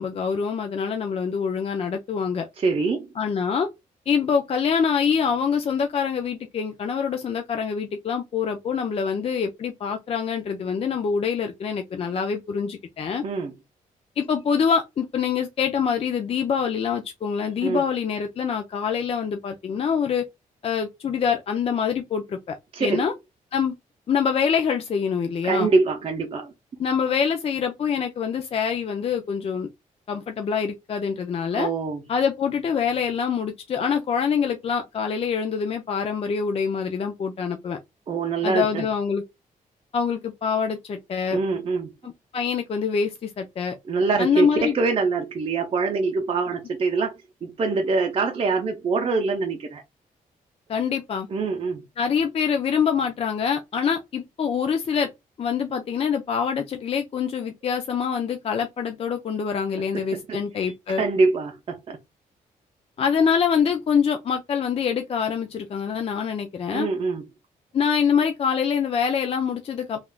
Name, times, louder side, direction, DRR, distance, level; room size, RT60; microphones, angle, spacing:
voice 1, 0.0-2.5 3.2-3.7 4.1-13.2 14.2-20.2 20.6-23.1 23.5-23.7 24.1-25.7 26.8-29.7 30.1-31.7 32.1-37.8 38.4-39.2 39.9-41.4 42.0-43.8 44.2-44.7 50.7-51.3 52.0-55.1 55.4-61.0 63.0-66.9 67.7-70.0, left 6 dB, 40° left, 0.4 m, -25 dB
voice 2, 2.6-3.1 13.2-13.5 17.6-17.8 22.7-23.0 25.4-26.5 31.5-32.0 38.1-38.9 41.3-41.9 43.9-47.1 47.4-49.8 51.3-51.8 59.9-62.0 66.7-67.3, right 4 dB, 40° right, 0.6 m, -24 dB
3.4 x 2.4 x 2.3 m
cardioid pair, 110°, 15 cm